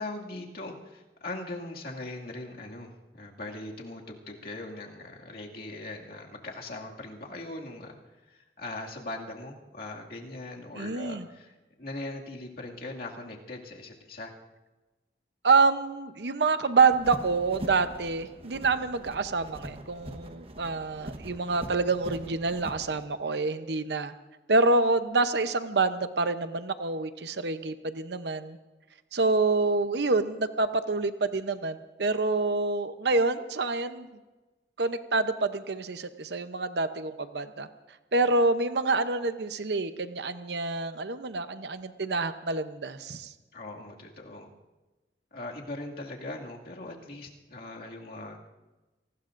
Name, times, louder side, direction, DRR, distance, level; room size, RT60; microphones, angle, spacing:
voice 1, 0.0-8.0 8.3-14.3 43.5-44.5 45.3-48.5, left 2 dB, 55° left, -1 dB, 2.3 m, -40 dB
voice 2, 10.8-11.3 15.4-24.1 24.5-28.6 29.1-34.1 34.8-37.7 38.1-43.3, right 3 dB, 65° right, 10 dB, 0.8 m, -27 dB
sound 1, 16.9-23.0, right 1 dB, 35° right, 1.1 m, -42 dB
28.0 x 19.5 x 2.6 m, 1.1 s
head